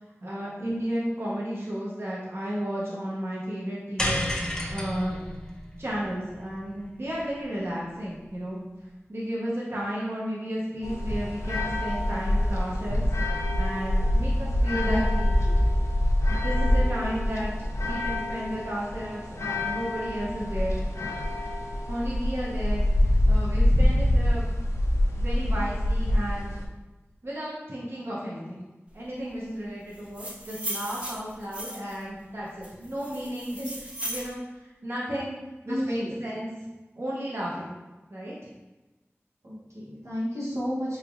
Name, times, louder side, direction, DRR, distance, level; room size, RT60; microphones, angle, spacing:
voice 1, 0.2-4.2 4.7-5.2 5.8-8.6 9.1-13.0 13.5-15.2 16.3-20.8 21.9-22.8 23.3-24.4 25.2-26.6 27.2-28.6 28.9-33.6 34.1-35.4 35.6-36.5 37.0-37.7 38.1-38.3, equal, 60° right, -6 dB, 0.8 m, -33 dB
sound 1, 4.0-8.4, left 1 dB, 15° left, 0.5 m, -33 dB
sound 2, 10.8-26.7, left 1 dB, 80° left, 0.4 m, -25 dB
voice 2, 14.8-15.6 33.5-33.7 34.9-35.0 35.6-36.2 39.4-41.0, equal, 90° right, -7 dB, 1.0 m, -33 dB
sound 3, 29.9-32.0 32.6-34.3, right 1 dB, 25° right, 0.8 m, -36 dB
3.9 x 3.1 x 2.5 m, 1.1 s
wide cardioid pair, 45°, 5 cm